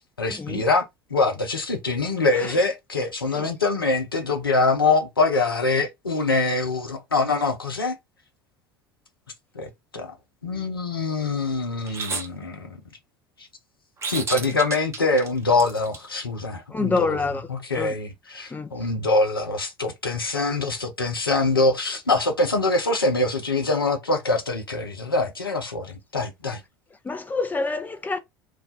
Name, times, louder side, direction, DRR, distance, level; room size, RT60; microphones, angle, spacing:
voice 1, 0.2-0.9 1.1-8.0 9.5-10.2 10.4-12.7 14.1-26.6, left 3 dB, 85° left, 0.6 m, -24 dB
sound 1, 11.8-12.3 14.0-16.0, right 4 dB, 25° right, 0.7 m, -31 dB
voice 2, 16.7-17.5 17.8-17.9 18.5-18.7 27.0-28.2, left 3 dB, 15° left, 0.5 m, -27 dB
2.4 x 2.2 x 3.9 m
figure-of-eight pair, 70°, 12 cm